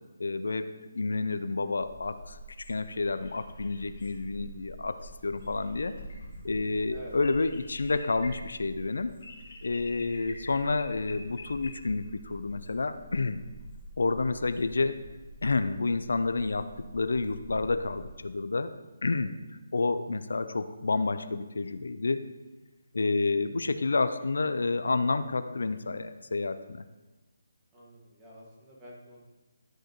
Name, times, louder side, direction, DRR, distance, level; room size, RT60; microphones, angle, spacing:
voice 1, 0.2-0.7 0.9-2.4 2.7-5.9 6.4-9.1 9.6-13.4 14.0-15.0 15.4-18.7 19.0-19.3 19.7-22.2 22.9-26.8, left 3 dB, 85° left, 11 dB, 0.4 m, -29 dB
sound 1, 1.8-18.1, equal, 60° left, 1.9 m, -47 dB
voice 2, 27.7-29.2, equal, 15° right, -5 dB, 1.5 m, -49 dB
12.5 x 5.0 x 3.0 m, 1.2 s
hypercardioid pair, 165°, 0 cm